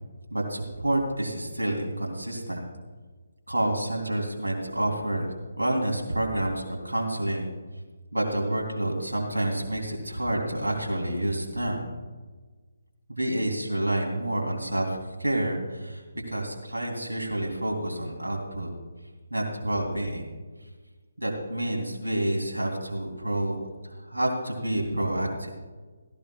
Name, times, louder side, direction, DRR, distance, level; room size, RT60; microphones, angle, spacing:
voice 1, 0.3-2.6 3.5-7.5 8.1-11.9 13.1-16.0 16.3-18.7 19.3-20.2 21.2-23.6 23.8-25.5, right 1 dB, 85° right, 0 dB, 3.0 m, -28 dB
17.0 x 15.0 x 2.3 m, 1.4 s
figure-of-eight pair, 145°, 0 cm